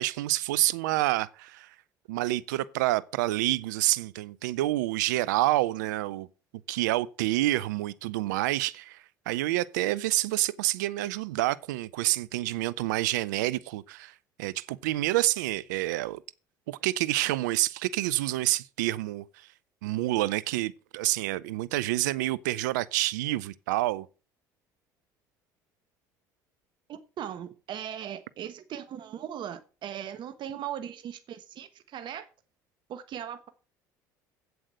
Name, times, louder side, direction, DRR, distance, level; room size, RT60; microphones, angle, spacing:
voice 1, 0.0-1.7 2.1-6.3 6.7-16.2 16.7-19.5 19.8-24.1, right 17 dB, 85° right, 0.5 m, -28 dB
voice 2, 26.9-32.3 32.9-33.5, right 10 dB, 55° right, 1.2 m, -38 dB
8.1 x 7.8 x 7.6 m
hypercardioid pair, 75°, 9 cm